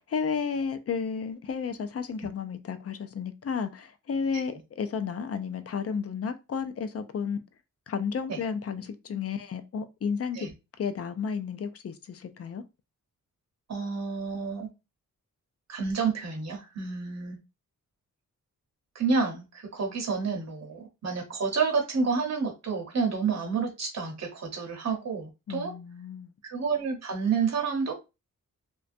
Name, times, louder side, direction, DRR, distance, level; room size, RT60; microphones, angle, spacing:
voice 1, 0.1-7.4 7.9-10.5 10.8-12.6 25.5-26.3, left 6 dB, 45° left, 0.4 m, -32 dB
voice 2, 13.7-14.7 15.7-17.4 18.9-25.7 26.4-27.9, right 5 dB, 50° right, 0.9 m, -29 dB
2.5 x 2.2 x 2.5 m
wide cardioid pair, 90°, 34 cm